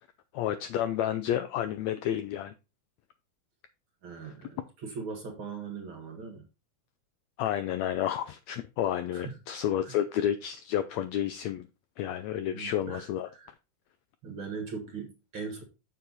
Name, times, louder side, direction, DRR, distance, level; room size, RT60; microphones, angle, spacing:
voice 1, 0.3-2.5 7.4-11.7 12.0-13.3, left 11 dB, 90° left, 1.5 m, -30 dB
voice 2, 4.0-6.4 9.1-9.4 9.9-10.0 12.5-13.5 14.2-15.6, right 5 dB, 45° right, 2.0 m, -40 dB
7.3 x 6.7 x 4.0 m
omnidirectional pair, 3.7 m